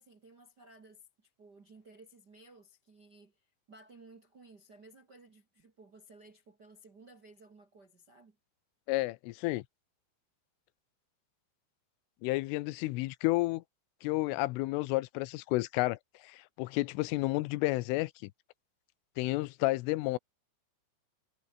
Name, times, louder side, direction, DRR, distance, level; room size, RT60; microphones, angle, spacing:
voice 1, 0.0-8.4, right 2 dB, 45° right, 1.3 m, -57 dB
voice 2, 8.9-9.6 12.2-13.6 14.0-16.0 16.2-18.3 19.2-20.2, left 20 dB, 85° left, 3.3 m, -31 dB
omnidirectional pair, 5.6 m